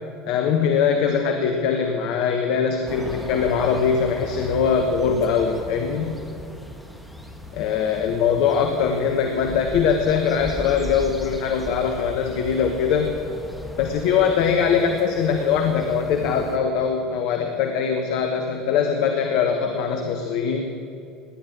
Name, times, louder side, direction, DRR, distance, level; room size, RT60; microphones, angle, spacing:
voice 1, 0.3-6.2 7.5-13.1 13.8-20.7, left 6 dB, 60° left, 5 dB, 1.2 m, -22 dB
sound 1, 2.9-16.6, equal, ahead, 2.0 m, -37 dB
18.5 x 10.5 x 6.2 m, 2.7 s
figure-of-eight pair, 70°, 0 cm